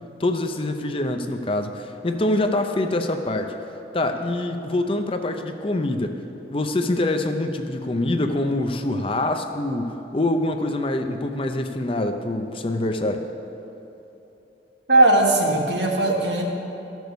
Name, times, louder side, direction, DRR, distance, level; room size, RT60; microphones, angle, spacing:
voice 1, 0.2-3.5 3.9-6.2 6.5-13.3, left 1 dB, 30° left, 6 dB, 0.6 m, -25 dB
voice 2, 14.9-16.4, right 2 dB, 80° right, 0 dB, 1.6 m, -18 dB
14.0 x 6.2 x 6.9 m, 3.0 s
head